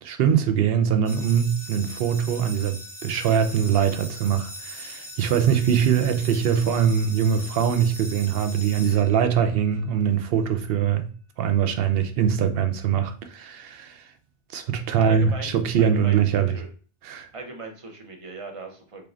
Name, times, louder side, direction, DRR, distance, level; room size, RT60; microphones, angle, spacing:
voice 1, 0.0-11.1 11.4-14.0 14.5-16.5 17.0-17.3, right 8 dB, 70° right, 0.7 m, -22 dB
sound 1, 1.0-9.7, equal, 25° left, 0.5 m, -40 dB
voice 2, 14.9-15.5 15.8-16.7 17.3-19.1, right 3 dB, 35° right, 0.7 m, -38 dB
3.6 x 3.4 x 2.4 m
omnidirectional pair, 1.1 m